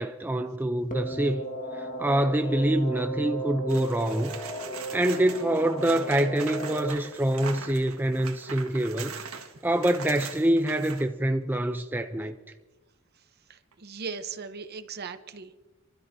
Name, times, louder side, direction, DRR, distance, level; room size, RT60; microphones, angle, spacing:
voice 1, 0.0-1.5 1.7-4.3 4.9-9.2 9.6-12.3, right 1 dB, 10° right, 0.4 m, -26 dB
sound 1, 0.9-6.9, right 1 dB, 40° left, 1.6 m, -35 dB
sound 2, 3.7-11.1 13.7-13.8, right 6 dB, 80° right, 1.5 m, -41 dB
voice 2, 13.5-15.6, right 5 dB, 50° right, 0.8 m, -38 dB
28.0 x 13.0 x 2.7 m
head